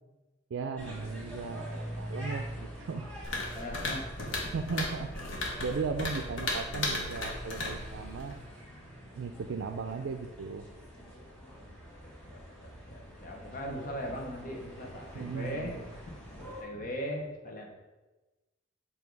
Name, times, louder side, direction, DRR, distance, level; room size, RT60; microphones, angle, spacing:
voice 1, 0.5-3.1 4.5-5.1 5.6-8.4 9.1-10.7 15.1-15.7, right 5 dB, 85° right, 5 dB, 0.4 m, -36 dB
sound 1, 0.8-16.6, equal, 5° left, 1.6 m, -45 dB
sound 2, 3.2-8.4, left 2 dB, 80° left, 1.2 m, -36 dB
voice 2, 3.5-4.6 12.0-17.7, equal, 45° left, 1 dB, 1.0 m, -40 dB
7.2 x 2.8 x 4.6 m, 1.1 s
head